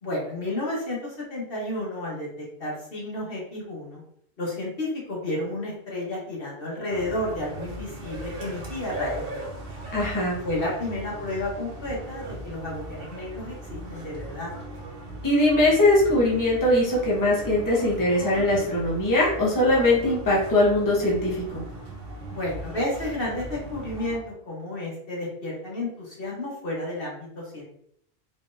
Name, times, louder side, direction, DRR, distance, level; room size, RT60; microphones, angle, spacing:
voice 1, 0.0-4.0 4.4-9.5 10.4-14.5 22.3-27.6, left 1 dB, 55° left, -4 dB, 1.4 m, -31 dB
sound 1, 6.9-24.2, right 1 dB, 60° right, 1.0 m, -38 dB
voice 2, 9.9-10.4 15.2-21.6, left 1 dB, 20° left, -5 dB, 0.9 m, -21 dB
4.2 x 3.1 x 2.6 m, 0.70 s
omnidirectional pair, 1.1 m